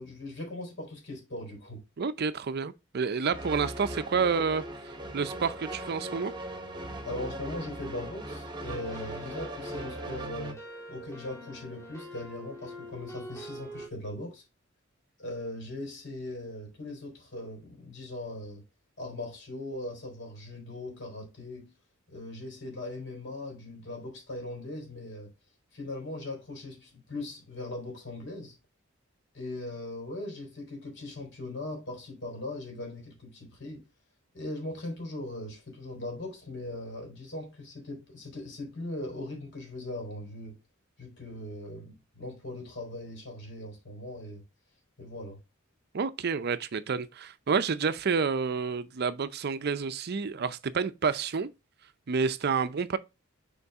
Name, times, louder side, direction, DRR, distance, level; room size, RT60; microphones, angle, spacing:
voice 1, 0.0-1.8 7.0-10.6 10.9-14.4 15.2-18.6 19.0-21.7 22.1-25.3 25.7-28.6 29.3-33.8 34.3-40.6 41.0-44.4 45.0-45.4, left 1 dB, 60° left, 4.0 m, -39 dB
voice 2, 2.0-6.3 45.9-51.5 52.1-53.0, right 5 dB, 50° right, 0.5 m, -29 dB
sound 1, 3.3-10.5, right 1 dB, 20° right, 1.1 m, -39 dB
sound 2, 8.7-13.9, equal, 15° left, 2.2 m, -44 dB
6.9 x 4.5 x 3.5 m
head